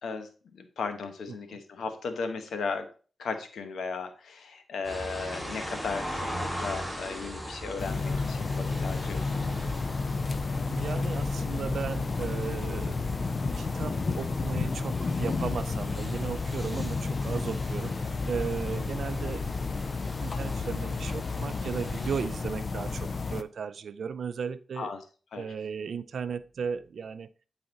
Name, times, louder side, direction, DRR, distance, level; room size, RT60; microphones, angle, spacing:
voice 1, 0.0-2.9 3.2-6.3 6.6-9.5 24.8-25.0 25.3-25.5, left 4 dB, 85° left, 7 dB, 1.1 m, -36 dB
sound 1, 4.8-22.2, equal, 10° left, 4.2 m, -40 dB
sound 2, 7.8-23.4, left 4 dB, 50° left, 0.5 m, -31 dB
voice 2, 10.7-13.2 13.6-17.9 18.3-19.4 20.2-24.9 25.3-27.3, right 6 dB, 75° right, 14 dB, 0.5 m, -35 dB
8.9 x 4.0 x 4.0 m, 0.38 s
cardioid pair, 55°, 0 cm